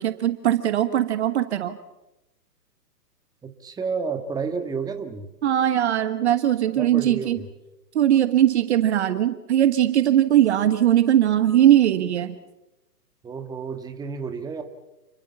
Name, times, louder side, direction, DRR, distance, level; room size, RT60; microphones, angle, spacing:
voice 1, 0.0-1.8 5.4-7.4 7.9-12.4, right 11 dB, 40° right, 11 dB, 1.2 m, -20 dB
voice 2, 3.4-5.3 6.8-7.4 13.2-14.6, right 5 dB, 10° right, 6 dB, 1.7 m, -30 dB
29.0 x 21.5 x 7.1 m, 0.98 s
figure-of-eight pair, 130°, 49 cm